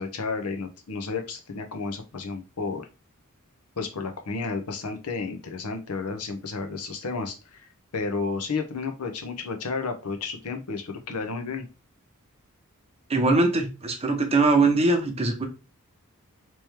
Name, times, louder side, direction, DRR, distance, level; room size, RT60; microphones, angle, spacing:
voice 1, 0.0-2.9 3.8-7.7 7.9-11.7, left 4 dB, 85° left, 6 dB, 0.8 m, -32 dB
voice 2, 13.1-15.4, right 3 dB, 30° right, 4 dB, 0.8 m, -21 dB
3.1 x 3.0 x 3.3 m, 0.29 s
head